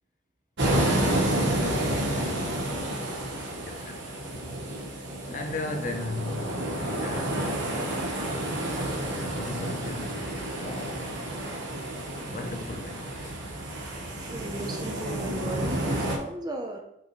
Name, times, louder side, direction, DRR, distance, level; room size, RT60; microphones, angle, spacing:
sound 1, 0.6-16.2, right 1 dB, 65° right, 1.3 m, -30 dB
voice 1, 0.8-2.7 3.6-4.1 5.3-7.7 8.0-8.6 8.9-11.4 12.3-13.5, left 2 dB, 40° left, 0.9 m, -38 dB
voice 2, 14.3-16.8, right 1 dB, 20° right, 0.8 m, -35 dB
7.4 x 5.4 x 3.2 m
head